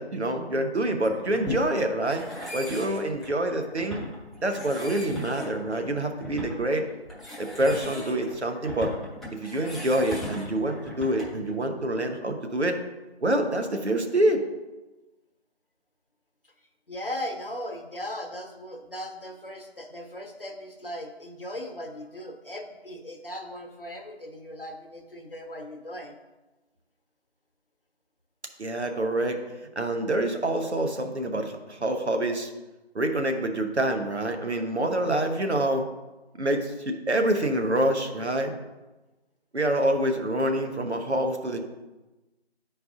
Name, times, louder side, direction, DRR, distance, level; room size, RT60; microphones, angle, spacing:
voice 1, 0.0-2.2 2.5-4.0 4.4-6.8 7.4-8.9 9.3-12.8 13.2-14.4 28.6-29.4 29.8-32.5 32.9-35.9 36.4-38.5 39.5-41.7, right 1 dB, 85° right, 5 dB, 1.1 m, -26 dB
sound 1, 1.0-11.5, left 1 dB, ahead, 0.6 m, -38 dB
voice 2, 16.9-26.2, left 1 dB, 55° left, 4 dB, 1.0 m, -38 dB
9.8 x 4.6 x 2.6 m, 1.1 s
figure-of-eight pair, 180°, 33 cm